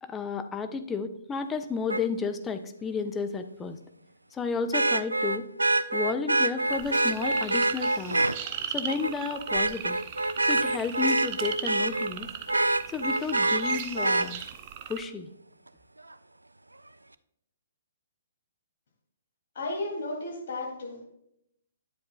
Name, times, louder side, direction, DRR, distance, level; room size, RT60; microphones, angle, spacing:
voice 1, 0.0-3.8 4.3-5.5 5.9-8.2 8.7-10.0 10.5-12.3 12.9-14.4 14.9-15.3, left 5 dB, 15° left, 9 dB, 0.5 m, -32 dB
Vehicle horn car horn honking, 1.9-2.0 4.7-8.4 8.9-9.1 9.5-12.1 12.5-14.3 16.1-16.2, right 2 dB, 80° right, 0.3 m, -25 dB
sound 1, 6.7-15.0, right 9 dB, 35° right, 0.6 m, -38 dB
voice 2, 19.5-21.0, left 2 dB, 55° left, 0 dB, 2.9 m, -34 dB
9.4 x 7.7 x 2.4 m, 0.75 s
figure-of-eight pair, 125°, 0 cm